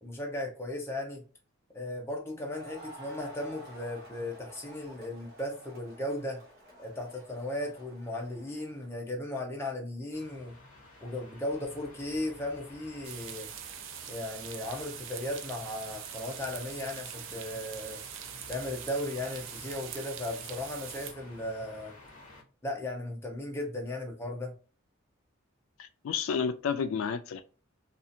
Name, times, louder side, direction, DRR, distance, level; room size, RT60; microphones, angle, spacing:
voice 1, 0.0-1.2 1.7-6.4 6.8-10.6 11.0-13.5 14.1-18.0 18.5-22.0 22.6-24.5, left 1 dB, 10° left, 0.6 m, -36 dB
Crowd, 2.4-9.0, right 1 dB, 45° right, 1.0 m, -51 dB
sound 1, 10.1-22.4, left 2 dB, 35° left, 1.1 m, -52 dB
sound 2, 13.0-21.1, right 10 dB, 65° right, 0.3 m, -43 dB
voice 2, 25.8-27.4, left 6 dB, 75° left, 0.3 m, -31 dB
2.7 x 2.4 x 2.5 m
head